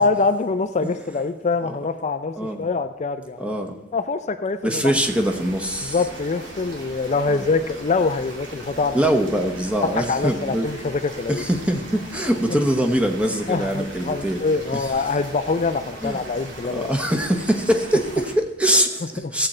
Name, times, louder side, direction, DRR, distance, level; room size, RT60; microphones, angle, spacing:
voice 1, 0.0-3.5 3.9-4.8 5.8-9.1 9.8-11.4 13.5-16.9 19.2-19.3, left 4 dB, 40° left, 8 dB, 0.4 m, -24 dB
voice 2, 2.4-2.7 3.4-3.8 4.6-6.0 7.3-7.5 8.9-10.7 11.3-14.4 14.7-14.9 16.0-16.2 16.7-19.5, equal, 5° right, 4 dB, 1.0 m, -23 dB
sound 1, 5.0-18.3, right 1 dB, 75° right, 2.5 m, -39 dB
16.0 x 7.8 x 4.3 m, 0.97 s
head